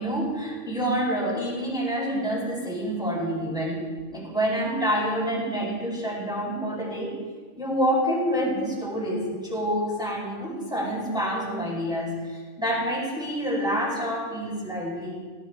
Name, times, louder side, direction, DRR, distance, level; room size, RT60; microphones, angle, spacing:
voice 1, 0.0-3.8 4.1-7.2 7.5-15.2, equal, ahead, -3 dB, 4.3 m, -27 dB
18.5 x 16.5 x 3.7 m, 1.5 s
omnidirectional pair, 3.6 m